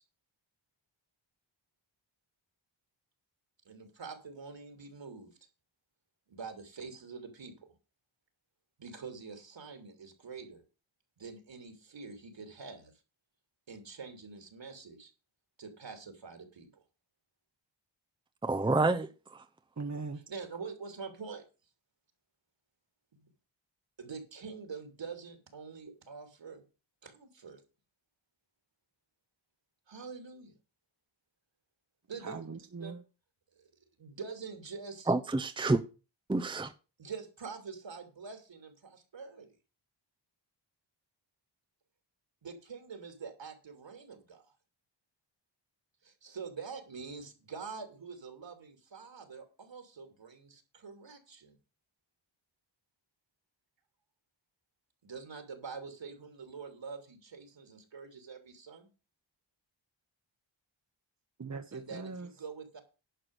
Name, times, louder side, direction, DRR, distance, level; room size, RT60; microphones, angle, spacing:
voice 1, 3.6-5.3 6.3-7.7 8.8-10.6 11.2-12.9 13.7-15.1 15.6-16.8 20.3-21.4 23.1-23.3 24.0-26.6 27.0-27.6 29.9-30.5 32.1-32.4 32.8-32.9 33.5-33.7 34.0-35.1 37.0-39.5 42.4-44.4 46.0-51.6 55.0-58.9 61.7-62.8, right 5 dB, 65° right, 3.0 m, -45 dB
voice 2, 18.4-19.4 35.1-35.8 36.3-36.7, right 2 dB, 10° right, 0.8 m, -28 dB
voice 3, 19.8-20.2 32.2-33.0 61.4-62.3, right 4 dB, 35° right, 1.2 m, -40 dB
11.0 x 4.8 x 8.0 m
cardioid pair, 65°, 47 cm